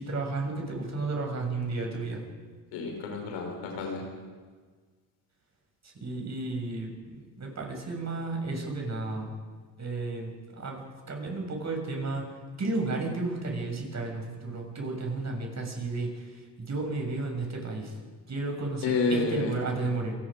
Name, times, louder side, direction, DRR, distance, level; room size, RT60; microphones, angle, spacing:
voice 1, 0.0-2.2 5.8-9.3 9.8-18.0 18.3-20.1, right 3 dB, 35° right, 2 dB, 7.0 m, -33 dB
voice 2, 2.7-4.0 18.8-19.5, left 3 dB, 80° left, 1 dB, 5.6 m, -29 dB
27.5 x 18.0 x 5.2 m, 1.5 s
supercardioid pair, 70°, 45 cm